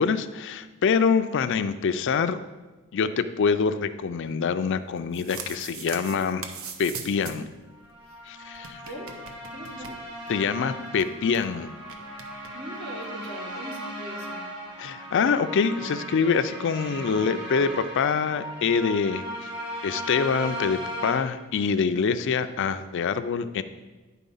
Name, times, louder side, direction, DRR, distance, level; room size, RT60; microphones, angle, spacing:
voice 1, 0.0-2.4 2.9-6.5 6.8-7.5 8.3-8.8 10.3-11.7 14.8-19.2 19.8-23.6, left 5 dB, 60° left, 12 dB, 0.4 m, -25 dB
sound 1, 4.9-7.5 7.8-7.9 8.1-8.2 8.5-10.4 10.7-10.8 11.0-11.4 11.9-12.5, right 5 dB, 70° right, 0.8 m, -40 dB
sound 2, 7.8-21.2, equal, 25° right, 2.4 m, -37 dB
voice 2, 8.9-9.2 9.5-10.0 12.5-14.4, right 1 dB, 55° right, 0 dB, 1.7 m, -40 dB
10.0 x 4.2 x 5.5 m, 1.2 s
head